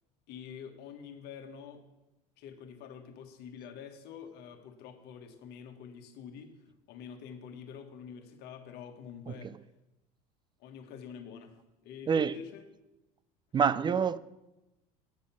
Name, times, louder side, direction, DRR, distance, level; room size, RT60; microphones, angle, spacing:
voice 1, 0.3-1.8 2.4-6.5 6.9-9.5 10.6-12.7, left 7 dB, 55° left, 1.6 m, -47 dB
voice 2, 12.1-12.4 13.5-14.2, right 6 dB, 25° right, 0.4 m, -27 dB
9.5 x 7.2 x 5.8 m
hypercardioid pair, 80°, 20 cm